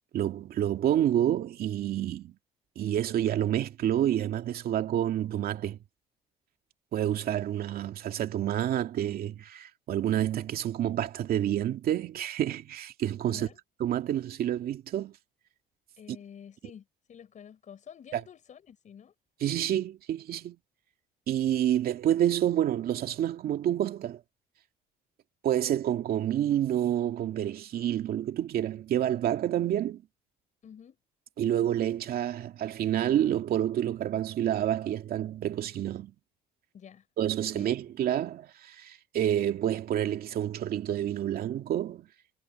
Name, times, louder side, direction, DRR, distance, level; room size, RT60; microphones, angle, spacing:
voice 1, 0.1-2.4 2.8-5.8 6.9-13.5 13.8-15.1 16.1-16.2 18.1-18.2 19.4-20.6 21.3-24.2 25.4-30.0 31.4-36.1 37.2-42.1, right 11 dB, 60° right, 2.4 m, -28 dB
voice 2, 13.3-13.6 16.0-19.1 30.6-31.0 36.7-37.1 37.5-37.7, left 8 dB, 45° left, 5.6 m, -49 dB
cardioid pair, 110°, 17 cm